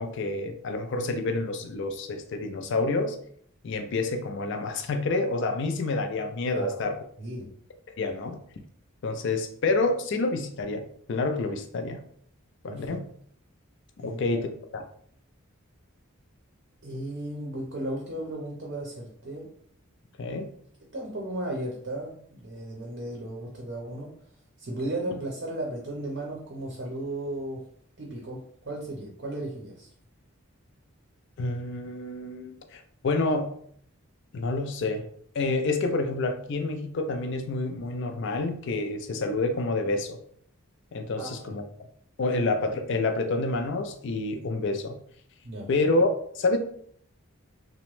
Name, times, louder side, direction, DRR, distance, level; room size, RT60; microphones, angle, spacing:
voice 1, 0.0-3.2 3.6-7.0 8.0-8.4 9.0-10.8 11.1-12.0 12.6-13.0 14.0-14.8 20.2-20.5 31.4-33.5 34.3-35.1 35.3-40.2 40.9-41.6 42.2-45.0 45.7-46.1 46.4-46.6, left 3 dB, 55° left, 6 dB, 0.4 m, -28 dB
voice 2, 12.7-13.0 14.0-14.2 16.8-19.5 20.9-24.1 24.6-27.6 28.0-29.9 41.2-41.6 45.4-45.7, right 1 dB, 50° right, -2 dB, 0.6 m, -35 dB
2.9 x 2.1 x 3.0 m, 0.63 s
head